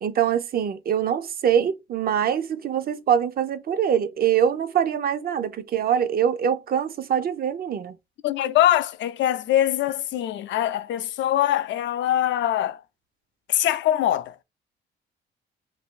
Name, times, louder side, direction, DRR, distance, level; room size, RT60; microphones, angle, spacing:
voice 1, 0.0-8.0, right 9 dB, 50° right, 0.5 m, -24 dB
voice 2, 8.2-12.8 13.5-14.3, left 12 dB, 70° left, 0.4 m, -23 dB
2.7 x 2.6 x 3.6 m
cardioid pair, 90°, 20 cm